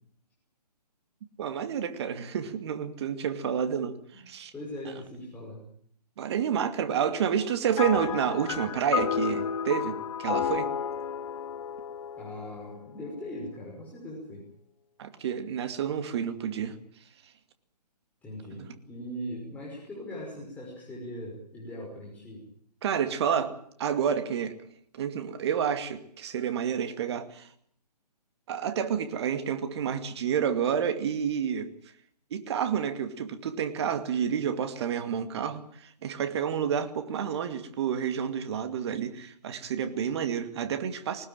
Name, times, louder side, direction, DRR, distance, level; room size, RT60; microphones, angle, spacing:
voice 1, 1.4-4.5 6.2-10.7 15.0-16.8 18.6-18.7 22.8-24.5 24.9-27.5 28.5-31.7 32.3-41.3, right 8 dB, 40° right, 9 dB, 2.4 m, -29 dB
voice 2, 4.5-5.6 12.2-14.4 18.2-22.4, equal, 5° left, -5 dB, 5.8 m, -40 dB
sound 1, 7.8-13.3, left 8 dB, 50° left, 1.5 m, -32 dB
20.5 x 19.5 x 9.0 m, 0.63 s
figure-of-eight pair, 145°, 21 cm